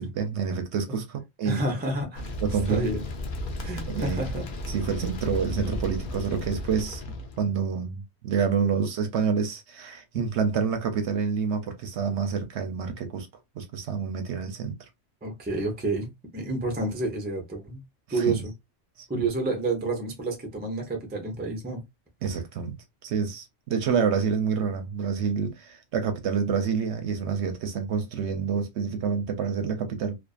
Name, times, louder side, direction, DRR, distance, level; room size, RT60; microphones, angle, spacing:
voice 1, 0.0-1.6 2.4-2.9 3.9-4.3 4.7-13.3 13.6-14.8 18.1-18.4 19.0-19.2 22.2-22.8 23.0-30.2, right 6 dB, 70° right, 0.8 m, -28 dB
voice 2, 1.4-2.3 2.7-3.0 3.6-4.5 10.1-10.2 15.2-17.8 18.1-18.5 19.1-21.8, right 2 dB, 15° right, 0.3 m, -29 dB
sound 1, 2.1-7.4, left 1 dB, 55° left, 0.6 m, -34 dB
2.5 x 2.4 x 2.3 m
omnidirectional pair, 1.3 m